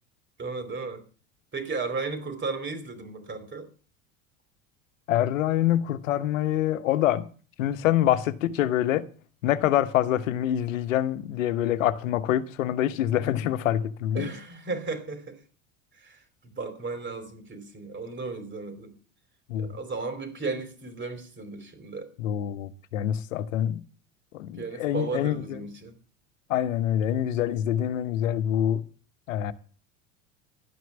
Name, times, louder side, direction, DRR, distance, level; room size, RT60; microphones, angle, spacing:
voice 1, 0.4-1.0 1.5-3.7 14.1-15.4 15.9-19.0 19.5-22.1 24.6-25.9, right 4 dB, 30° right, 4.4 m, -35 dB
voice 2, 5.1-7.3 7.6-9.0 9.4-14.3 19.5-19.8 22.2-23.8 24.3-25.6 26.5-28.8 29.3-29.5, left 11 dB, 75° left, 1.1 m, -25 dB
12.0 x 9.3 x 7.2 m
hypercardioid pair, 75°, 39 cm